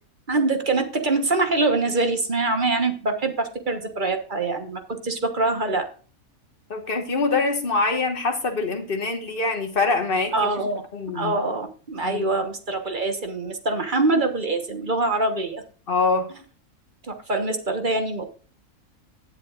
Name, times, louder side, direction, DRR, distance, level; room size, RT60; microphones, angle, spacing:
voice 1, 0.3-5.8 10.3-10.8 11.1-15.6 17.1-18.2, right 3 dB, 35° right, 6 dB, 1.4 m, -24 dB
voice 2, 6.7-10.3 10.9-11.3 12.0-12.2 15.9-16.3, left 3 dB, 40° left, 5 dB, 1.6 m, -24 dB
16.0 x 7.6 x 2.5 m, 0.39 s
omnidirectional pair, 1.5 m